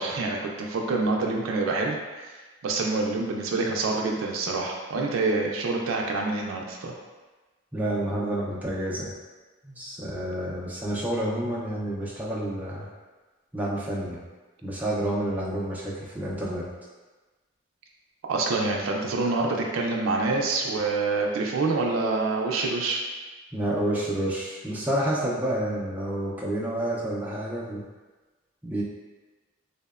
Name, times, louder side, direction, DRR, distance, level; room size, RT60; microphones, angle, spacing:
voice 1, 0.0-2.0 2.2-2.3 2.6-6.9 18.2-23.0, right 3 dB, 85° right, 0 dB, 0.3 m, -26 dB
voice 2, 7.7-9.1 9.6-12.9 13.5-14.2 14.6-16.7 23.5-27.9 28.6-28.8, right 1 dB, 10° right, -6 dB, 0.3 m, -29 dB
2.7 x 2.0 x 2.3 m, 1.3 s
head